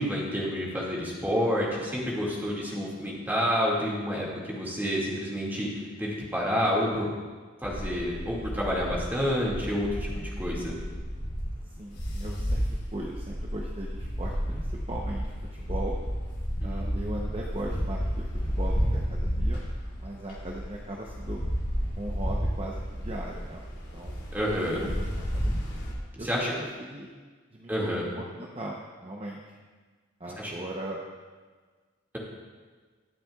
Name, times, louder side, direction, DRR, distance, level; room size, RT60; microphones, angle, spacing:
voice 1, 0.0-7.1 7.6-10.8 16.6-17.2 17.7-17.8 24.3-24.9 26.1-26.5 27.7-28.1 30.4-30.5, equal, 10° right, -5 dB, 2.0 m, -29 dB
sound 1, 7.6-25.9, equal, 55° left, 2.7 m, -32 dB
voice 2, 11.8-12.6 12.9-15.9 16.6-19.6 20.0-21.4 22.0-23.6 23.9-24.2 24.6-24.7 25.3-25.7 26.2-26.3 26.6-27.1 27.5-29.4 30.2-31.0, right 1 dB, 30° right, -2 dB, 0.7 m, -39 dB
22.0 x 7.4 x 2.3 m, 1.5 s
head